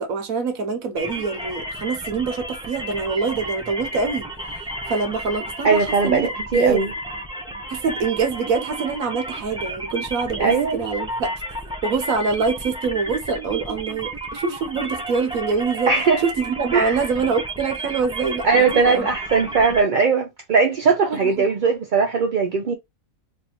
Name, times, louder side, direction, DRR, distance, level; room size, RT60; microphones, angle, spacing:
voice 1, 0.0-4.3 4.9-6.9 7.7-11.3 11.8-15.9 16.2-19.1 21.1-21.4, right 4 dB, 75° right, 1.3 m, -25 dB
sound 1, 1.0-19.8, right 1 dB, 5° right, 0.4 m, -32 dB
voice 2, 5.6-6.9 10.4-10.8 15.9-16.2 16.7-17.0 18.4-22.7, right 5 dB, 55° right, 0.5 m, -19 dB
3.3 x 2.4 x 4.2 m
omnidirectional pair, 1.5 m